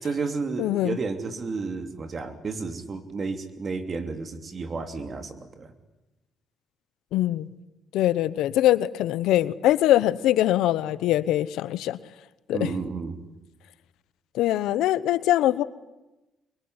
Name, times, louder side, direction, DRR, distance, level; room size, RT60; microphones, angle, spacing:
voice 1, 0.0-5.7 12.5-13.2, right 4 dB, 40° right, 8 dB, 3.0 m, -32 dB
voice 2, 0.6-1.0 7.1-7.5 7.9-12.0 12.5-12.7 14.3-15.6, left 13 dB, 90° left, 16 dB, 0.9 m, -22 dB
23.5 x 23.0 x 9.7 m, 1.0 s
cardioid pair, 90°, 0 cm